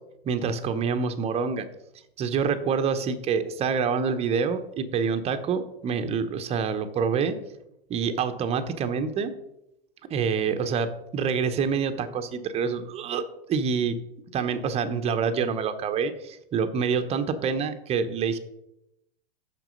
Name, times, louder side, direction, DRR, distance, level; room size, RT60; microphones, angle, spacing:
voice 1, 0.2-1.7 2.2-7.4 7.9-9.3 10.1-13.2 13.5-14.0 14.3-18.4, right 6 dB, 20° right, 9 dB, 0.7 m, -26 dB
6.2 x 5.9 x 5.2 m, 0.84 s
hypercardioid pair, 120°, 29 cm